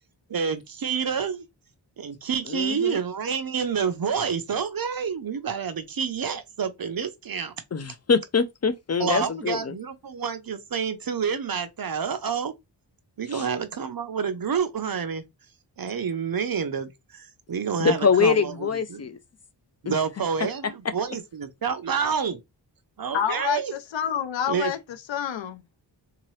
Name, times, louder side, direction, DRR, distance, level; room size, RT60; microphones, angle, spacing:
voice 1, 0.3-1.4 2.0-7.5 9.0-12.5 13.2-15.2 15.8-19.0 19.8-22.4 23.0-23.7 24.5-24.7, right 6 dB, 50° right, 0.7 m, -28 dB
voice 2, 2.5-3.0 7.7-9.7 13.3-13.5 17.8-19.2 19.9-20.0, left 5 dB, 35° left, 0.5 m, -24 dB
voice 3, 23.1-24.8 25.1-25.6, left 9 dB, 80° left, 0.6 m, -27 dB
3.7 x 2.9 x 3.1 m
wide cardioid pair, 90°, 44 cm